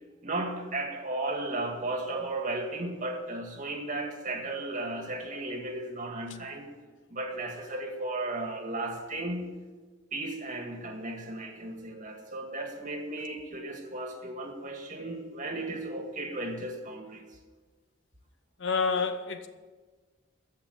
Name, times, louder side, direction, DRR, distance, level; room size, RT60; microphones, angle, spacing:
voice 1, 0.2-6.7 7.1-9.6 10.1-17.3, right 2 dB, 40° right, 2.0 m, -35 dB
voice 2, 18.6-19.5, left 5 dB, 65° left, 1.0 m, -28 dB
14.0 x 5.9 x 8.9 m
head